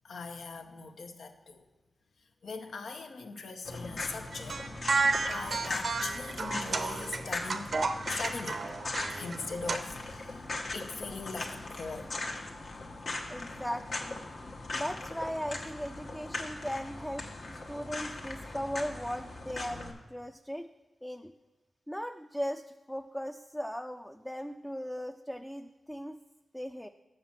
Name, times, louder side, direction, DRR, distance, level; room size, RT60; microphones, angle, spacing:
voice 1, 0.0-1.6 2.4-4.6 5.1-7.7 8.1-8.7 9.1-10.5 10.7-12.2, left 4 dB, 85° left, 5 dB, 0.8 m, -41 dB
sound 1, 3.6-19.9, left 2 dB, 65° left, 1.2 m, -39 dB
sound 2, 4.3-9.8, right 4 dB, 65° right, 0.6 m, -32 dB
voice 2, 13.3-14.2 14.7-20.7 21.0-21.3 21.9-26.2 26.5-26.9, equal, 5° left, 5 dB, 0.4 m, -38 dB
6.5 x 5.7 x 7.2 m, 1.1 s
cardioid pair, 60°, 0 cm